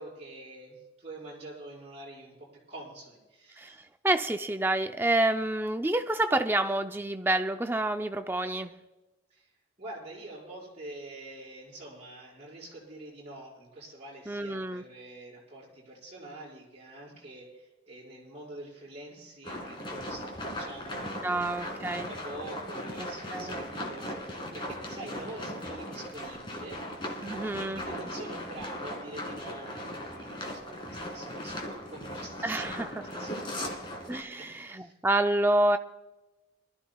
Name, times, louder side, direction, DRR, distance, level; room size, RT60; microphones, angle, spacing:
voice 1, 0.0-3.8 9.3-9.5 9.8-21.5 22.0-33.9 34.4-34.9, right 1 dB, 35° right, -6 dB, 5.8 m, -46 dB
voice 2, 4.0-8.7 14.3-14.8 21.2-22.1 23.0-23.5 27.2-27.8 32.4-33.0 34.1-35.8, right 2 dB, 10° right, 7 dB, 0.5 m, -28 dB
sound 1, 19.4-34.2, left 1 dB, 25° left, 2.1 m, -38 dB
25.0 x 13.5 x 2.3 m, 1.1 s
head